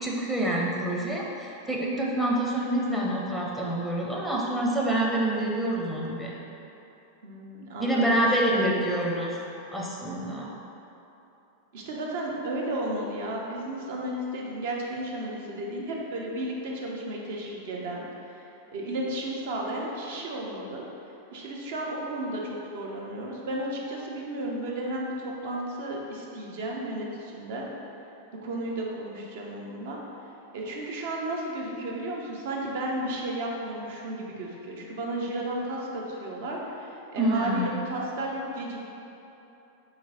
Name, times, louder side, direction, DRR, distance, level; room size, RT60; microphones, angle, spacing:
voice 1, 0.0-6.4 7.8-9.4 9.7-10.5 37.2-37.8, right 1 dB, ahead, -3 dB, 0.6 m, -27 dB
voice 2, 7.2-8.8 11.7-18.3 18.7-20.8 21.3-27.7 28.4-30.0 30.5-38.8, right 1 dB, 55° right, -2 dB, 0.7 m, -33 dB
4.1 x 3.1 x 3.8 m, 2.9 s
figure-of-eight pair, 90°, 0 cm